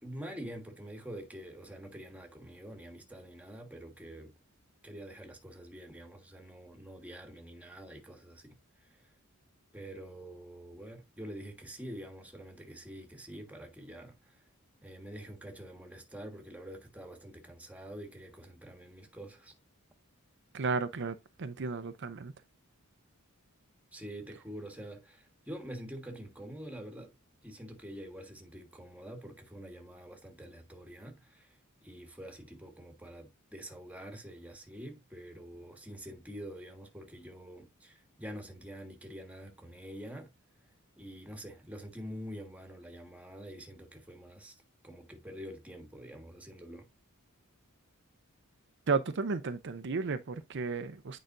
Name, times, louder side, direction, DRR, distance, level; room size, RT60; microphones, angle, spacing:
voice 1, 0.0-4.3 4.8-8.6 8.9-9.0 9.7-14.4 14.8-19.5 23.9-27.1 27.4-40.3 41.0-44.6 44.8-46.9, equal, 5° right, 1.5 m, -46 dB
voice 2, 20.5-22.3 48.9-51.2, right 4 dB, 55° right, 0.6 m, -33 dB
8.8 x 5.0 x 2.6 m
head